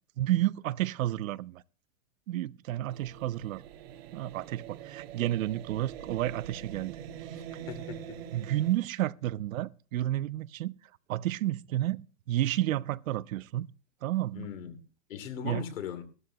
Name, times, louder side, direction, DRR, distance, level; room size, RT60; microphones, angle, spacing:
voice 1, 0.2-1.6 2.3-3.6 4.1-7.0 7.3-7.4 8.3-10.7 11.1-13.7 14.0-14.5 15.4-15.6, right 14 dB, 85° right, 0.7 m, -31 dB
sound 1, 2.9-8.7, right 9 dB, 50° right, 1.3 m, -44 dB
voice 2, 7.5-8.2 14.3-14.8 15.1-16.0, left 8 dB, 75° left, 2.8 m, -39 dB
16.0 x 12.5 x 2.9 m
supercardioid pair, 165°, 39 cm